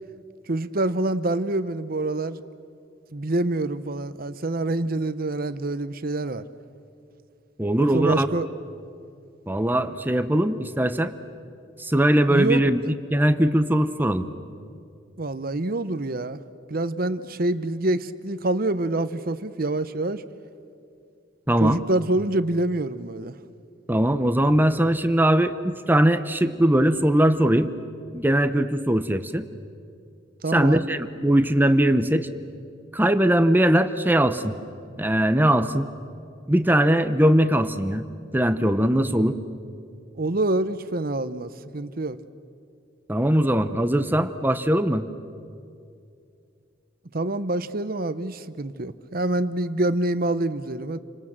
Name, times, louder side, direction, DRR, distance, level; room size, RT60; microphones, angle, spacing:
voice 1, 0.5-2.4 3.1-6.4 7.8-8.5 12.3-12.9 15.2-16.4 16.7-20.2 21.6-23.4 30.4-30.8 40.2-42.2 47.1-51.0, right 2 dB, 50° right, 13 dB, 0.9 m, -26 dB
voice 2, 7.6-8.3 9.5-11.1 11.8-14.2 21.5-21.8 23.9-27.7 28.1-29.4 30.5-32.3 32.9-34.6 35.0-35.9 36.5-38.0 38.3-39.4 43.1-45.0, right 1 dB, 10° right, 10 dB, 0.9 m, -20 dB
30.0 x 25.0 x 7.5 m, 2.4 s
head